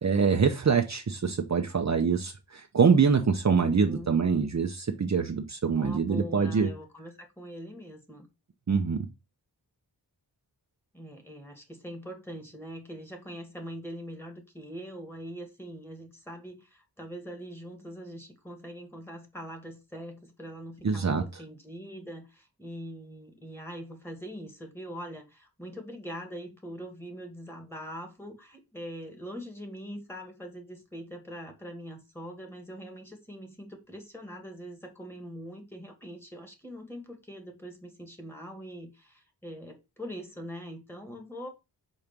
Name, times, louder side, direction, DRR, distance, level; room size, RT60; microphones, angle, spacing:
voice 1, 0.0-6.7 8.7-9.1 20.8-21.2, right 5 dB, 45° right, 0.9 m, -25 dB
voice 2, 3.6-4.2 5.8-8.3 10.9-41.5, equal, 5° left, 2.1 m, -42 dB
5.2 x 4.3 x 6.0 m
wide cardioid pair, 95°, 40 cm